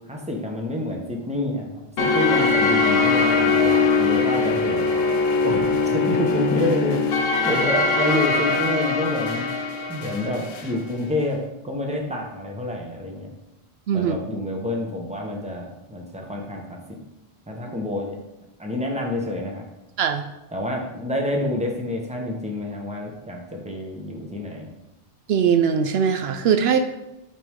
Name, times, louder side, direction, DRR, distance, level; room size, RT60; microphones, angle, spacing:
voice 1, 0.0-5.0 5.4-9.5 9.9-13.3 13.9-16.8 17.5-18.2 18.6-19.7 20.5-24.7, left 1 dB, 5° right, 0 dB, 1.1 m, -28 dB
sound 1, 2.0-10.8, left 4 dB, 70° left, 0.9 m, -21 dB
voice 2, 25.3-26.8, right 7 dB, 75° right, 7 dB, 0.8 m, -20 dB
9.4 x 5.3 x 3.7 m, 0.95 s
omnidirectional pair, 1.1 m